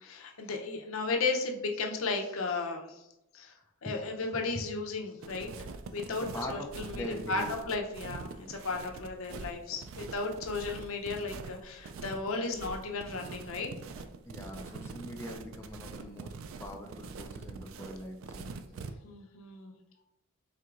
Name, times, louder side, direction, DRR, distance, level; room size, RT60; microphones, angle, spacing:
voice 1, 0.0-3.1 3.3-3.5 3.8-5.5 5.9-13.7 19.0-19.7, left 3 dB, 80° left, 2 dB, 0.6 m, -35 dB
sound 1, 5.2-18.9, right 4 dB, 75° right, 0.3 m, -44 dB
voice 2, 6.2-7.5 14.2-16.3 16.6-18.5, left 1 dB, 15° left, 1 dB, 0.4 m, -42 dB
4.5 x 3.7 x 2.5 m, 0.88 s
head